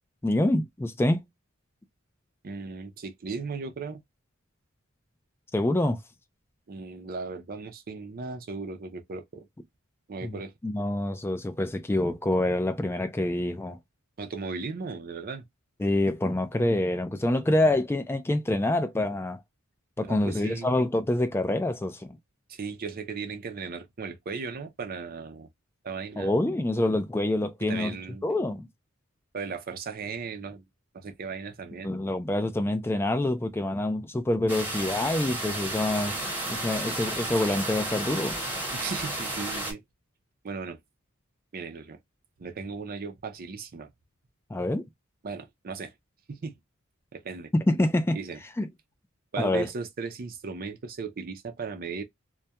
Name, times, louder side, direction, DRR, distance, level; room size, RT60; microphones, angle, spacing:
voice 1, 0.2-1.3 5.5-6.0 10.2-13.8 15.8-19.4 20.0-22.2 26.2-28.0 28.2-28.7 31.8-36.2 36.5-38.4 44.5-44.8 47.5-48.2 48.6-48.7 49.4-49.7, left 1 dB, 10° left, 0.3 m, -26 dB
voice 2, 2.4-4.0 6.7-9.5 10.1-10.5 14.2-15.4 20.1-20.8 22.5-25.5 25.8-26.4 27.7-28.2 29.3-30.6 30.9-32.0 38.7-39.8 40.4-40.8 41.5-42.0 42.4-43.9 45.2-45.9 46.3-46.5 47.1-47.5 48.1-48.4 49.3-52.0, right 4 dB, 45° right, 0.5 m, -36 dB
sound 1, 34.5-39.7, right 1 dB, 10° right, 0.9 m, -32 dB
2.2 x 2.2 x 2.8 m
head